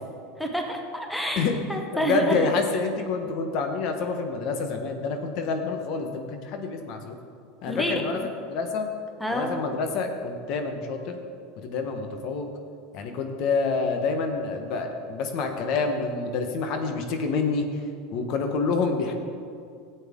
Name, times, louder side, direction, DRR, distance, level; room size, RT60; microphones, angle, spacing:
voice 1, 0.4-2.4 7.7-8.2 9.2-9.5, equal, ahead, 2 dB, 1.0 m, -28 dB
voice 2, 1.9-7.2 7.6-8.2 8.5-8.9 9.3-11.2 11.6-12.5 12.9-17.7 18.1-19.1, left 4 dB, 55° left, 5 dB, 1.2 m, -27 dB
13.5 x 8.1 x 3.7 m, 2.3 s
supercardioid pair, 130°, 0 cm